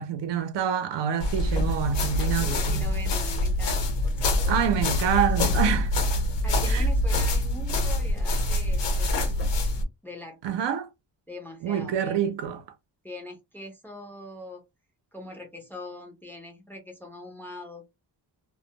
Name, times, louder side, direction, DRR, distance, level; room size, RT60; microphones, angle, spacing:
voice 1, 0.0-2.9 4.5-5.9 6.7-6.8 10.4-10.9 11.6-12.6, right 8 dB, 80° right, 0.6 m, -27 dB
sound 1, 1.2-9.8, left 1 dB, 85° left, 0.8 m, -25 dB
voice 2, 2.2-5.5 6.4-9.6 10.0-10.6 11.3-12.3 13.0-14.6 15.1-17.8, left 1 dB, 5° left, 0.4 m, -43 dB
2.2 x 2.1 x 2.7 m
wide cardioid pair, 175°, 42 cm